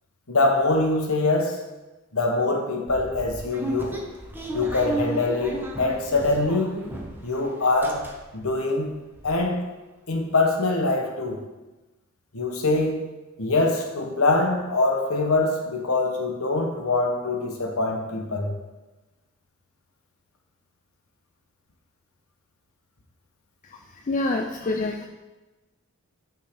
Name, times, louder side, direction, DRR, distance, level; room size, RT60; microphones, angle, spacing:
voice 1, 0.3-1.6 2.1-4.1 4.5-6.8 7.2-8.0 8.3-9.7 10.1-11.4 12.3-13.1 13.4-18.5, left 2 dB, 70° left, 2 dB, 1.1 m, -24 dB
sound 1, 2.9-7.3 7.6-8.5 8.9-9.0 9.1-9.4, right 2 dB, 10° right, 0.8 m, -34 dB
voice 2, 23.6-25.1, left 2 dB, 35° left, 3 dB, 0.4 m, -27 dB
8.7 x 3.7 x 5.0 m, 1.1 s
head